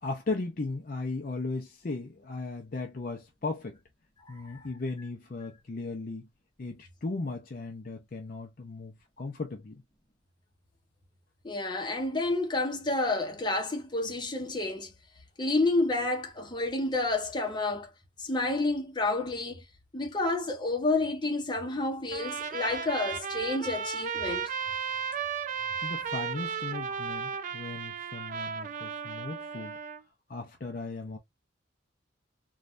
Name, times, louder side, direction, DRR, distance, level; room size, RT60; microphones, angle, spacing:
voice 1, 0.0-3.8 4.3-6.3 6.6-9.8 25.8-29.8 30.3-31.2, left 3 dB, 45° left, 0.5 m, -37 dB
voice 2, 4.3-4.7 11.4-14.9 15.4-17.9 18.2-19.6 19.9-24.5, left 2 dB, 25° left, 0.8 m, -30 dB
Trumpet, 22.1-30.0, right 6 dB, 40° right, 0.4 m, -35 dB
3.1 x 2.3 x 2.4 m
head